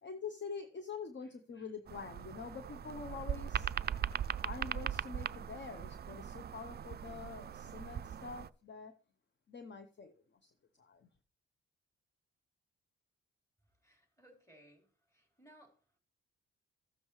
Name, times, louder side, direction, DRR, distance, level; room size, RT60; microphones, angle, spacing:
voice 1, 0.0-3.7 4.4-8.9 9.5-11.1, left 5 dB, 40° left, 0.9 m, -46 dB
sound 1, 1.9-8.5, right 9 dB, 35° right, 0.4 m, -40 dB
voice 2, 13.8-14.8 15.1-15.7, right 1 dB, 10° left, 4.3 m, -61 dB
15.0 x 7.1 x 3.2 m
supercardioid pair, 55°, 30 cm